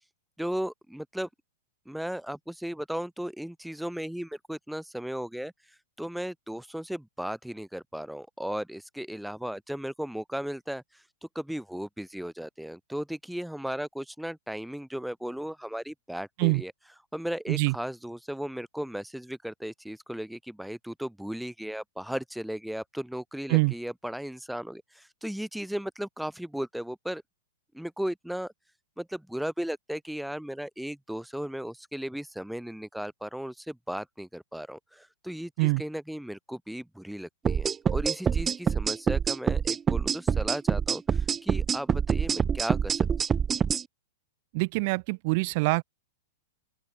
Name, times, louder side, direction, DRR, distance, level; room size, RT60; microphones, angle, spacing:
voice 1, 0.4-1.3 1.9-5.5 6.0-11.0 11.3-16.7 17.1-27.2 27.7-28.5 29.0-43.1, equal, ahead, 7.5 m, -36 dB
sound 1, 37.5-43.8, right 7 dB, 15° right, 1.5 m, -26 dB
voice 2, 44.5-45.8, right 27 dB, 50° right, 5.1 m, -24 dB
open air
hypercardioid pair, 135°, 0 cm